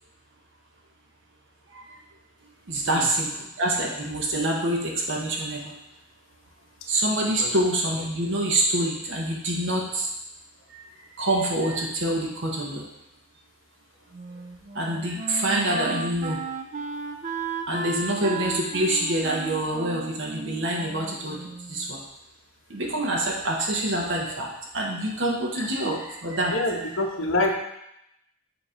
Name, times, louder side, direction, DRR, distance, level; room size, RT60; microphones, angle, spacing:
voice 1, 2.7-3.3 3.6-5.7 6.9-10.1 11.2-12.9 14.7-16.4 17.7-21.4 21.7-22.0 22.7-24.5 24.7-26.6, right 1 dB, 65° right, -1 dB, 1.0 m, -26 dB
Wind instrument woodwind instrument, 14.1-21.9, right 4 dB, 40° right, 0.4 m, -35 dB
voice 2, 26.5-27.5, left 2 dB, 70° left, 1 dB, 1.0 m, -26 dB
7.0 x 3.0 x 5.0 m, 0.81 s
head